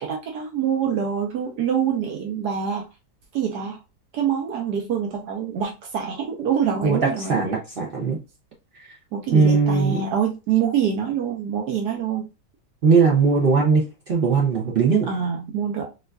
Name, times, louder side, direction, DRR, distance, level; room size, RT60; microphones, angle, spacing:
voice 1, 0.0-2.8 3.3-3.8 4.1-7.4 9.1-12.3 15.1-15.9, right 8 dB, 75° right, 1.2 m, -25 dB
voice 2, 6.8-8.2 9.3-10.0 12.8-15.1, right 5 dB, 60° right, 0.5 m, -19 dB
4.3 x 2.4 x 2.3 m
omnidirectional pair, 1.8 m